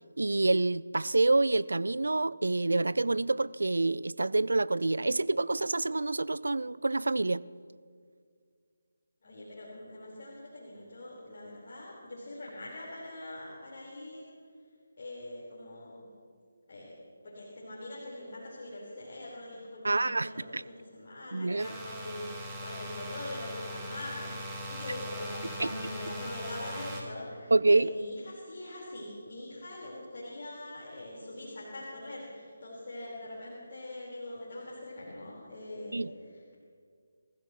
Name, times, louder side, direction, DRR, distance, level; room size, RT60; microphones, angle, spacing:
voice 1, 0.2-7.4 19.8-20.6 21.3-21.7 25.6-25.7 27.5-27.9 35.9-36.1, right 2 dB, 80° right, 19 dB, 0.4 m, -27 dB
voice 2, 9.2-14.3 15.0-16.1 16.7-17.0 17.2-36.6, left 1 dB, 50° left, -7 dB, 4.7 m, -43 dB
sound 1, 21.6-27.0, equal, 5° right, 2.4 m, -40 dB
27.0 x 15.0 x 3.2 m, 2.1 s
figure-of-eight pair, 155°, 0 cm